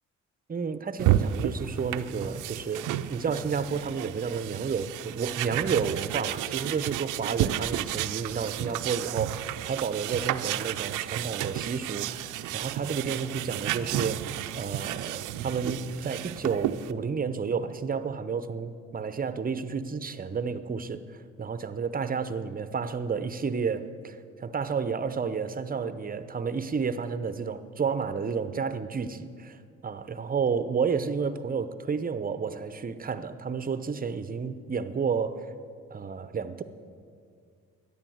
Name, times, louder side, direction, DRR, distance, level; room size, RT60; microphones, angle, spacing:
voice 1, 0.5-2.8 3.1-21.0 21.4-29.6 29.8-35.5 35.9-36.6, right 5 dB, 30° right, 12 dB, 0.8 m, -31 dB
sound 1, 1.0-16.9, right 12 dB, 90° right, 0.6 m, -32 dB
13.0 x 10.0 x 7.9 m, 2.3 s
cardioid pair, 90°, 30 cm